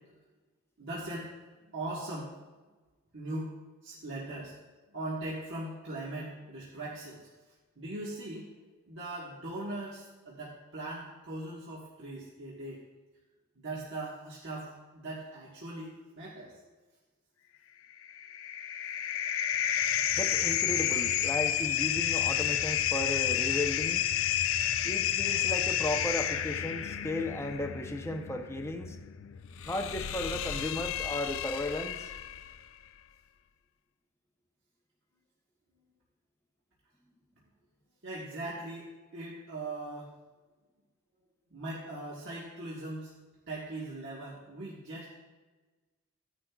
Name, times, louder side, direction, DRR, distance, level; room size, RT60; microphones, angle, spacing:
voice 1, 0.8-2.3 3.1-4.6 4.9-7.3 7.8-12.8 13.5-16.7 24.4-24.6 38.0-38.9 39.1-40.1 41.5-43.1 43.5-45.1, right 2 dB, 55° right, -6 dB, 1.5 m, -40 dB
sound 1, 18.0-32.6, left 10 dB, 60° left, 0.4 m, -31 dB
voice 2, 20.2-24.0 24.8-29.0 29.6-32.1, left 1 dB, 10° left, 4 dB, 0.7 m, -35 dB
15.5 x 10.0 x 2.4 m, 1.3 s
head